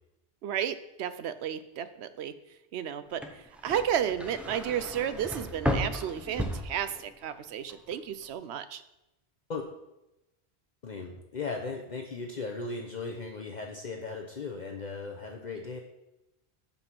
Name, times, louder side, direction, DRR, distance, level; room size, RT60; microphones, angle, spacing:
voice 1, 0.4-2.3 2.7-8.8, right 9 dB, 75° right, 12 dB, 0.9 m, -33 dB
sound 1, 3.1-7.4 7.7-8.3, equal, ahead, 0.7 m, -34 dB
voice 2, 10.8-15.8, left 4 dB, 45° left, 2 dB, 0.8 m, -37 dB
7.1 x 5.6 x 6.0 m, 0.92 s
omnidirectional pair, 1.1 m